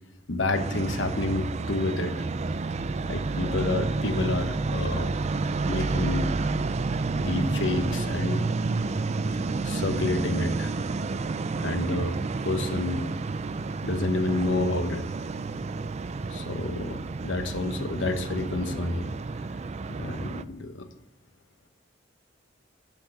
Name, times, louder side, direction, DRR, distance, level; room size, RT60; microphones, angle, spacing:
voice 1, 0.3-2.3 3.0-5.2 5.7-6.3 7.2-8.4 9.3-10.7 11.6-13.1 13.8-15.0 16.3-19.1 19.9-20.9, left 2 dB, 70° left, 8 dB, 1.1 m, -29 dB
sound 1, 0.5-20.4, right 3 dB, 35° right, 0.4 m, -30 dB
7.4 x 7.2 x 7.8 m, 0.85 s
head